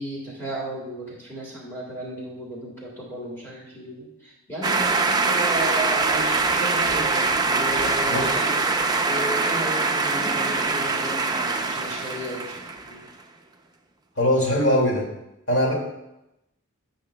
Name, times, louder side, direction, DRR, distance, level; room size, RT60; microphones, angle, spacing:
voice 1, 0.0-13.1, right 1 dB, 10° left, -5 dB, 1.6 m, -34 dB
sound 1, 4.6-12.9, right 3 dB, 20° right, 0.5 m, -23 dB
voice 2, 8.1-8.4 14.2-15.1 15.5-15.7, equal, 55° left, -1 dB, 2.1 m, -21 dB
16.0 x 5.6 x 2.2 m, 0.91 s
head